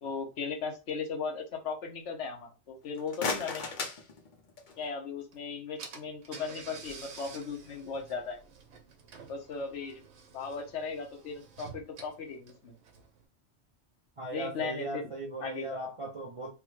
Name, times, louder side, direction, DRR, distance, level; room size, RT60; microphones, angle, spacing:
voice 1, 0.0-3.6 4.8-8.4 9.3-10.0 10.3-12.8 14.3-14.9 15.4-15.8, left 5 dB, 75° left, 1.1 m, -37 dB
sound 1, 2.8-4.9, left 4 dB, 50° left, 0.6 m, -37 dB
Car / Engine, 5.3-5.4 5.8-13.2, right 5 dB, 80° right, 1.1 m, -50 dB
voice 2, 14.2-16.5, right 2 dB, 45° right, 0.4 m, -38 dB
3.4 x 2.1 x 3.1 m
omnidirectional pair, 1.2 m